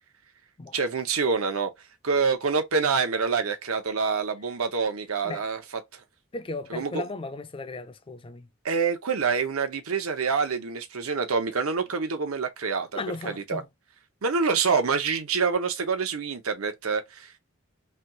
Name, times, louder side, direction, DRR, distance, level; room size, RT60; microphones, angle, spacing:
voice 1, 0.7-1.7 2.0-5.6 5.9-6.0 6.7-7.0 8.6-13.6 14.2-17.4, right 5 dB, 85° right, 0.8 m, -26 dB
voice 2, 6.3-8.5 12.9-13.7, left 3 dB, 25° left, 0.4 m, -36 dB
3.3 x 2.3 x 2.7 m
head